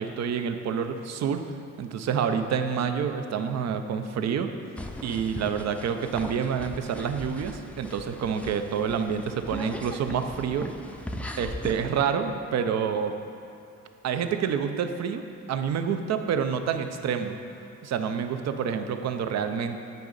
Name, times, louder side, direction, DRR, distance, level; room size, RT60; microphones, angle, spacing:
voice 1, 0.0-1.4 1.8-4.5 5.0-10.7 11.4-13.1 14.0-17.4 17.8-19.8, right 7 dB, 60° right, 8 dB, 0.6 m, -28 dB
sound 1, 4.8-11.7, left 1 dB, 5° left, 0.5 m, -39 dB
9.2 x 5.2 x 3.9 m, 2.6 s
cardioid pair, 90°, 30 cm